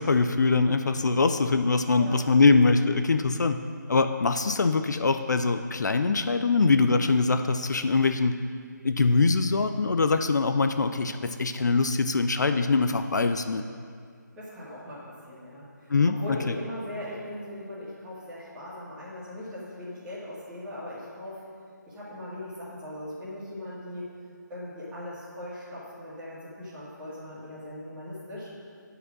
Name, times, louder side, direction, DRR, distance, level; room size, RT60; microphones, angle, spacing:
voice 1, 0.0-3.6 3.9-8.4 8.8-13.6 15.9-16.1 16.5-16.6, left 3 dB, 65° left, 8 dB, 0.5 m, -23 dB
voice 2, 14.4-21.4 21.8-24.1 24.5-28.5, left 1 dB, 10° right, -11 dB, 2.0 m, -39 dB
9.8 x 5.0 x 6.0 m, 2.2 s
figure-of-eight pair, 160°, 10 cm